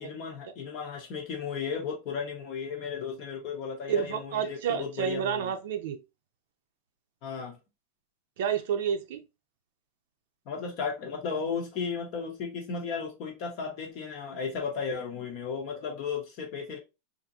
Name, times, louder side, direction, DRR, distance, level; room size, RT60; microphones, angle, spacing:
voice 1, 0.0-5.5 7.2-7.5 10.5-16.8, left 5 dB, 35° left, 0.7 m, -35 dB
voice 2, 3.9-6.0 8.4-9.2, right 8 dB, 60° right, 0.6 m, -29 dB
3.6 x 2.6 x 2.7 m
supercardioid pair, 175°, 0 cm